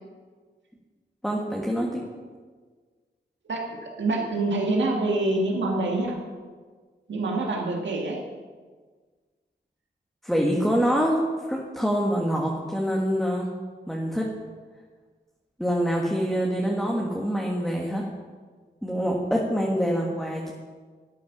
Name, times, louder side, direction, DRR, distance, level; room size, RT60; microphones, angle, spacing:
voice 1, 1.2-2.0 10.2-11.2 11.5-13.5 13.9-14.2 15.6-18.0 18.8-20.5, equal, ahead, -2 dB, 1.7 m, -25 dB
voice 2, 3.4-6.2 7.1-8.2 19.9-20.1, right 2 dB, 90° right, 0 dB, 1.9 m, -26 dB
12.0 x 9.3 x 6.0 m, 1.5 s
wide cardioid pair, 85°, 18 cm